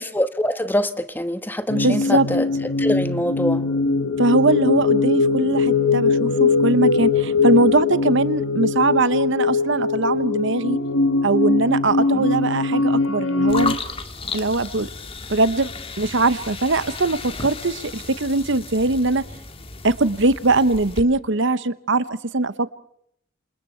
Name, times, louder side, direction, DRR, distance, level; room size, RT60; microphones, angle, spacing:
voice 1, 0.0-2.4 2.8-3.6 12.1-12.2, left 1 dB, 10° left, 10 dB, 1.2 m, -24 dB
sound 1, 1.7-13.8, left 4 dB, 65° left, 1.3 m, -21 dB
voice 2, 1.7-2.3 4.2-10.8 11.2-13.8 14.3-14.9 15.3-15.7 16.0-19.2 19.8-22.0 22.3-22.7, right 2 dB, 60° right, 15 dB, 1.0 m, -21 dB
sound 2, 13.5-21.0, left 4 dB, 25° left, 1.9 m, -34 dB
27.5 x 27.5 x 4.5 m, 0.71 s
head